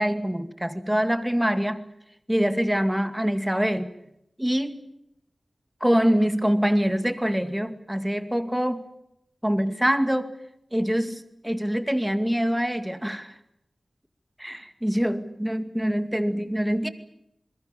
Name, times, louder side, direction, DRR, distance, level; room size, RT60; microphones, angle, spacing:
voice 1, 0.0-1.8 2.3-3.9 4.4-4.8 5.8-8.8 9.4-10.3 10.7-13.3 14.4-16.9, equal, 5° right, 10 dB, 2.3 m, -24 dB
27.5 x 21.5 x 7.1 m, 0.82 s
wide cardioid pair, 75°, 0 cm